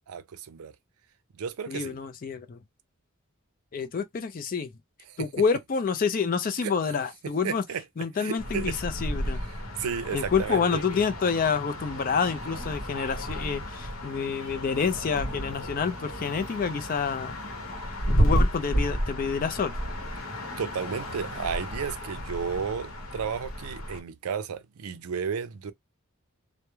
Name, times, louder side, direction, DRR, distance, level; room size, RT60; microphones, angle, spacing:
voice 1, 0.1-0.7 1.3-2.0 5.1-5.2 6.6-6.7 7.4-7.8 8.2-8.8 9.8-10.8 20.6-25.7, right 6 dB, 75° right, 0.4 m, -33 dB
voice 2, 1.7-2.6 3.7-4.7 5.2-7.6 8.0-9.4 10.1-17.4 18.2-19.8, left 5 dB, 40° left, 0.4 m, -28 dB
sound 1, 8.4-24.0, equal, 80° left, 0.9 m, -32 dB
2.2 x 2.0 x 2.9 m
head